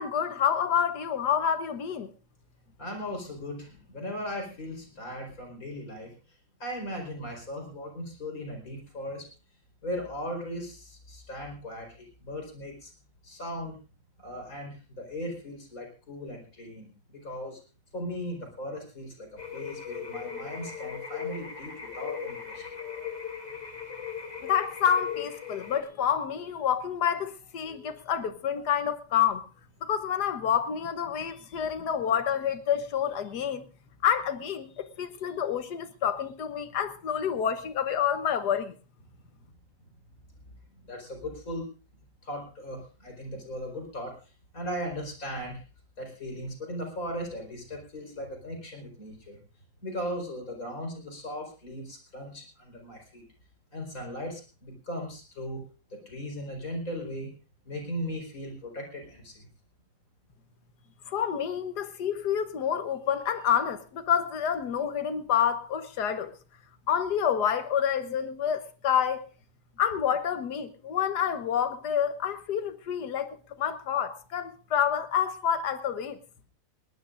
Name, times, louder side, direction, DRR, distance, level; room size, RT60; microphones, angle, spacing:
voice 1, 0.0-2.1 24.4-29.4 29.8-33.6 34.0-38.7 61.1-66.3 66.9-69.3 69.8-76.2, left 8 dB, 80° left, 1.6 m, -28 dB
voice 2, 2.8-6.1 6.6-9.2 9.8-11.9 12.2-12.9 13.2-13.8 14.2-17.6 17.9-22.6 40.9-41.7 42.2-44.1 44.5-45.6 46.0-49.4 49.8-53.2 53.7-55.6 55.9-57.3 57.6-59.5, equal, 60° left, 5.0 m, -37 dB
sound 1, 19.4-25.8, left 7 dB, 25° left, 1.8 m, -38 dB
20.5 x 19.0 x 2.5 m
omnidirectional pair, 1.7 m